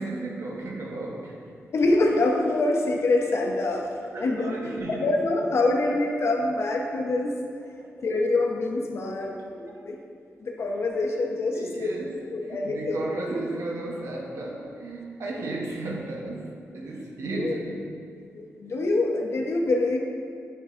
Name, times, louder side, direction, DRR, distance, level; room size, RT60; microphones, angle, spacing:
voice 1, 0.0-1.4 4.1-5.2 7.8-8.1 9.7-9.9 11.1-11.3 11.5-17.8, right 2 dB, 75° right, -2 dB, 0.9 m, -34 dB
voice 2, 1.7-3.9 4.2-7.3 8.0-10.0 10.4-11.9 12.3-13.0 17.3-17.6 18.3-20.0, left 2 dB, 60° left, 1 dB, 0.8 m, -25 dB
9.0 x 6.8 x 2.5 m, 2.3 s
wide cardioid pair, 105°, 5 cm